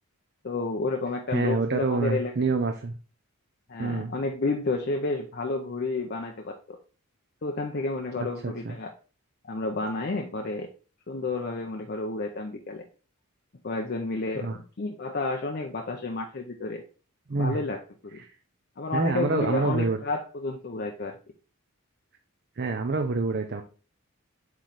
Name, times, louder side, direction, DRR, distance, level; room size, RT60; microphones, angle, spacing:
voice 1, 0.4-2.3 3.7-6.8 7.4-8.9 9.5-10.7 11.1-12.8 13.6-16.8 17.3-18.2 18.8-21.2, left 3 dB, 45° left, 3 dB, 0.6 m, -31 dB
voice 2, 1.3-2.9 3.8-4.1 8.4-8.8 14.3-14.6 17.3-17.6 18.1-18.3 18.9-20.0 22.6-23.6, right 3 dB, 45° right, 5 dB, 0.5 m, -27 dB
8.2 x 3.2 x 3.8 m, 0.36 s
head